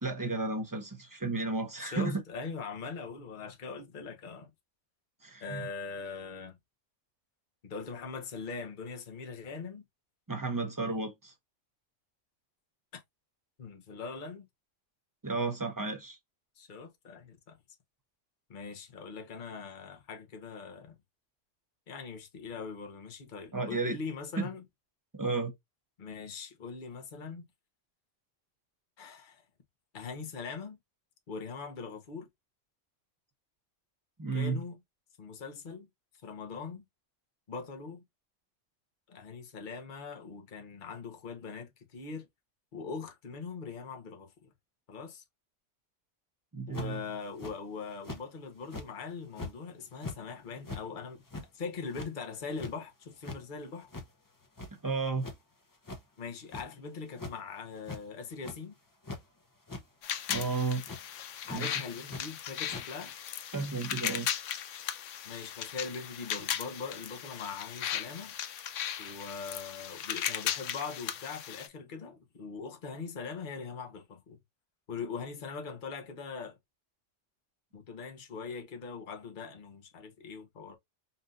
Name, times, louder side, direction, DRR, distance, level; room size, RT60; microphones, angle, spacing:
voice 1, 0.0-2.2 5.2-5.7 10.3-11.3 15.2-16.2 23.5-24.0 24.4-24.5 25.1-25.5 34.2-34.6 46.5-47.0 54.8-55.3 60.3-60.8 61.5-61.7 63.5-64.3, right 3 dB, 20° right, 0.9 m, -32 dB
voice 2, 1.8-4.5 5.4-6.6 7.6-9.8 12.9-13.0 13.6-14.5 16.6-17.6 18.5-21.0 21.9-24.6 26.0-27.4 29.0-29.4 29.9-30.8 31.3-32.3 34.3-34.8 35.2-35.9 36.2-36.8 37.5-38.0 39.1-42.3 42.7-44.5 44.9-45.2 46.7-51.2 51.5-53.9 56.2-58.8 61.5-63.1 65.2-68.3 69.0-74.4 74.9-76.6 77.7-80.7, left 5 dB, 45° left, 1.1 m, -41 dB
sound 1, 46.7-47.0 47.4-47.5 48.0-48.2 48.6-48.9 49.4-49.5 49.9-50.2 50.6-50.8 51.3-51.5 51.9-52.1 52.6-52.7 53.1-53.4 53.9-54.0 54.4-54.9 55.2-55.4 55.8-56.0 56.5-56.6 57.1-57.3 57.8-58.0 58.3-58.6 59.0-59.2 59.7-59.8 60.3-60.5 60.9-61.0 61.4-61.6 62.1-62.2 62.7-62.8, left 2 dB, 20° left, 0.7 m, -41 dB
sound 2, 60.0-71.7, left 10 dB, 85° left, 1.0 m, -37 dB
5.5 x 2.7 x 2.5 m
omnidirectional pair, 1.2 m